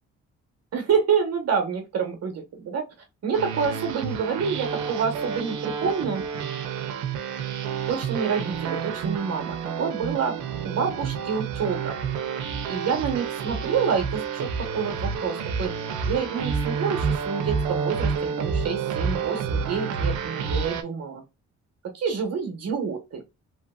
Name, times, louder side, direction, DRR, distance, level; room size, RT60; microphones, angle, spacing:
voice 1, 0.7-2.3 2.6-2.8 3.2-6.2 7.9-12.0 12.7-21.2 21.8-23.2, right 6 dB, 55° right, 1.0 m, -28 dB
sound 1, 3.3-20.8, right 6 dB, 85° right, 0.6 m, -29 dB
3.0 x 2.4 x 2.3 m
cardioid pair, 90°, 30 cm